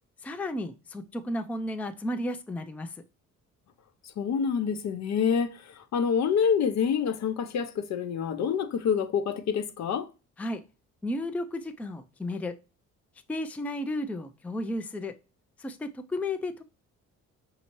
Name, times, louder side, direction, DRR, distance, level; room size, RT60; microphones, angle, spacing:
voice 1, 0.2-3.0 10.4-10.6 11.0-12.6 13.3-15.1 15.6-16.6, left 1 dB, 5° left, 0.4 m, -33 dB
voice 2, 4.2-10.1, left 7 dB, 65° left, 0.7 m, -27 dB
5.4 x 2.8 x 2.9 m
cardioid pair, 90°, 30 cm